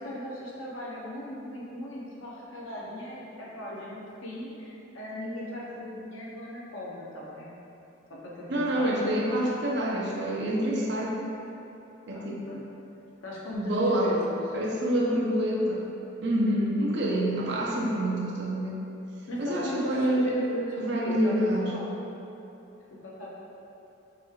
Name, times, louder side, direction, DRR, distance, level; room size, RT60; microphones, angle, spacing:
voice 1, 0.0-7.5 8.1-8.9 12.1-12.6 13.2-13.7 14.0-14.4 19.3-20.8 21.0-21.9 23.0-23.3, equal, 75° left, -5 dB, 0.8 m, -38 dB
voice 2, 8.5-11.2 12.1-12.4 13.5-14.1 14.5-15.8 16.2-18.8 19.4-20.3 20.8-21.7, right 1 dB, 55° right, -3 dB, 0.6 m, -27 dB
5.8 x 3.2 x 2.4 m, 3.0 s
head